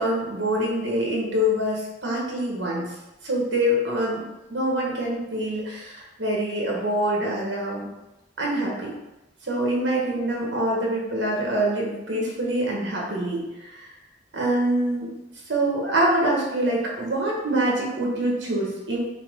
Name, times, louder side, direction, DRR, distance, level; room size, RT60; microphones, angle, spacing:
voice 1, 0.0-2.9 3.2-4.2 4.5-7.9 8.4-8.9 9.5-13.9 14.3-15.1 15.5-19.1, right 1 dB, 75° right, -3 dB, 1.4 m, -25 dB
5.7 x 2.2 x 3.8 m, 0.99 s
head